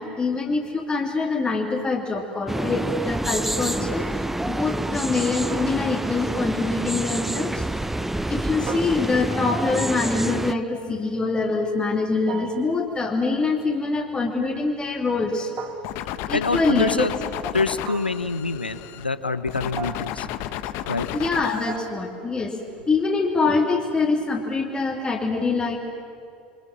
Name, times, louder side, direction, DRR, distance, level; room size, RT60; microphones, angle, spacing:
voice 1, 0.0-4.0 4.4-7.6 8.3-15.5 16.3-17.0 21.1-22.5 22.9-25.8, left 3 dB, 20° left, -1 dB, 2.6 m, -24 dB
sound 1, 2.5-10.5, right 1 dB, 5° right, 0.7 m, -27 dB
sound 2, 5.5-6.1 8.7-9.5 12.3-12.9 15.6-16.3 17.8-18.4 19.8-20.3 21.7-22.3, right 7 dB, 40° right, 2.1 m, -38 dB
sound 3, 15.8-19.1 19.5-21.8, left 12 dB, 50° left, 1.2 m, -32 dB
voice 2, 16.3-17.1 17.5-20.3 20.9-21.1, left 3 dB, 90° left, 13 dB, 1.0 m, -26 dB
28.5 x 24.0 x 7.6 m, 2.6 s
figure-of-eight pair, 75°, 5 cm